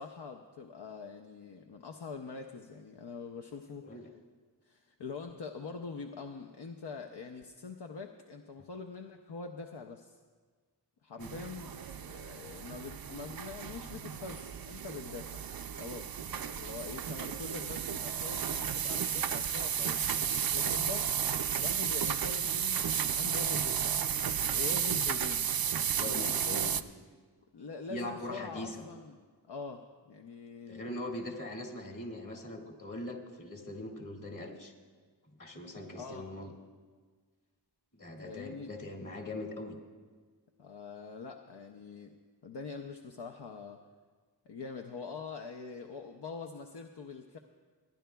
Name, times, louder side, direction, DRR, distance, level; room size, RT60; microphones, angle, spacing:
voice 1, 0.0-4.0 4.6-10.2 11.0-11.7 12.0-21.2 21.6-24.0 24.5-25.5 26.0-26.8 27.5-30.8 35.9-36.3 38.2-38.7 40.6-42.2 42.4-43.8 44.5-47.4, left 4 dB, 70° left, 3 dB, 0.7 m, -44 dB
sound 1, 11.2-26.8, right 8 dB, 60° right, 0.5 m, -33 dB
voice 2, 25.9-26.7 27.9-28.9 30.7-34.7 35.4-36.5 38.0-39.8, left 1 dB, 50° left, -1 dB, 2.1 m, -41 dB
29.0 x 10.5 x 2.3 m, 1.5 s
wide cardioid pair, 55°, 42 cm